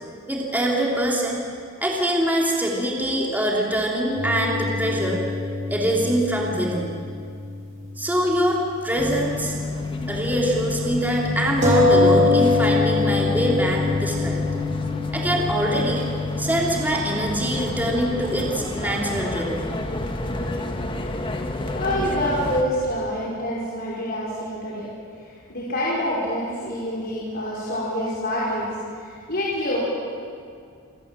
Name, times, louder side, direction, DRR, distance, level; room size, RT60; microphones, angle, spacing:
voice 1, 0.3-1.4 1.8-5.2 5.7-6.9 8.0-9.5 10.1-14.4 15.1-19.7, equal, 10° right, -2 dB, 3.3 m, -24 dB
sound 1, 4.1-8.0 8.3-8.4 11.6-16.8, left 2 dB, 40° right, 6.3 m, -24 dB
sound 2, 9.0-22.6, left 3 dB, 25° left, 1.9 m, -29 dB
voice 2, 21.7-24.9 25.5-28.7 29.0-29.8, equal, 50° left, -6 dB, 5.2 m, -26 dB
28.0 x 25.5 x 7.7 m, 2.3 s
head